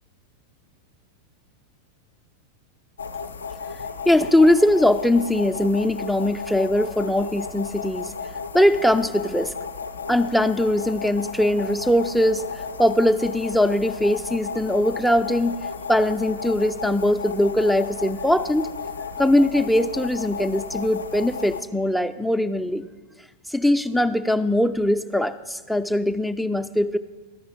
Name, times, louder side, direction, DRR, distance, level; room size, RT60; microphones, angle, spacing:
sound 1, 3.0-21.6, left 5 dB, 75° left, 0.3 m, -34 dB
voice 1, 4.1-8.1 8.5-9.5 10.1-12.5 12.8-15.6 15.9-18.7 19.2-22.9 23.5-27.0, left 1 dB, ahead, 10 dB, 0.3 m, -21 dB
13.0 x 5.4 x 3.9 m, 1.3 s
figure-of-eight pair, 90°, 0 cm